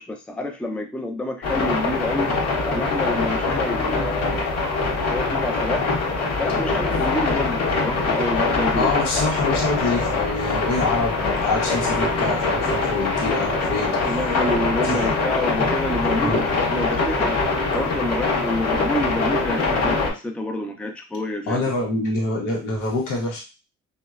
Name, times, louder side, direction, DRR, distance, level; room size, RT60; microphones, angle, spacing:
voice 1, 0.0-2.4 2.6-4.7 5.1-5.9 6.4-8.9 14.1-21.9, left 1 dB, 5° left, 3 dB, 0.4 m, -28 dB
sound 1, 1.4-20.1, left 3 dB, 60° left, 0.9 m, -23 dB
voice 2, 8.7-14.0 14.8-15.1 16.1-16.4 21.5-23.4, left 2 dB, 85° left, -1 dB, 0.8 m, -26 dB
2.9 x 2.1 x 2.3 m, 0.31 s
cardioid pair, 90°, 30 cm